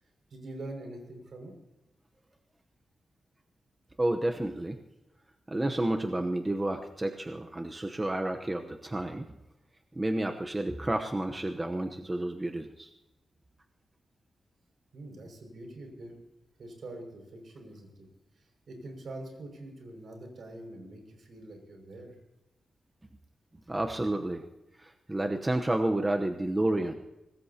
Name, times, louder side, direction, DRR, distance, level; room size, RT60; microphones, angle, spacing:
voice 1, 0.3-1.5 14.9-16.2 16.6-18.1 18.4-22.2, right 2 dB, 60° right, 3 dB, 6.0 m, -44 dB
voice 2, 4.0-4.8 5.5-9.3 9.9-12.9 23.7-24.5 24.8-27.0, right 1 dB, 15° right, 4 dB, 0.9 m, -30 dB
24.5 x 19.0 x 2.9 m, 0.97 s
wide cardioid pair, 135°, 0 cm